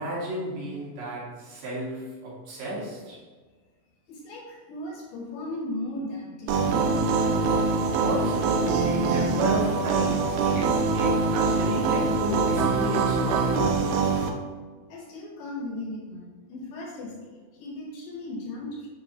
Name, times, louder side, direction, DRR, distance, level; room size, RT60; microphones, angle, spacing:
voice 1, 0.0-3.2 8.0-13.9, equal, 70° right, -6 dB, 3.0 m, -33 dB
voice 2, 4.1-7.4 14.9-18.9, left 1 dB, 70° left, -1 dB, 2.4 m, -37 dB
sound 1, 6.5-14.3, right 4 dB, 85° right, 2.4 m, -24 dB
9.0 x 3.8 x 2.7 m, 1.4 s
omnidirectional pair, 4.3 m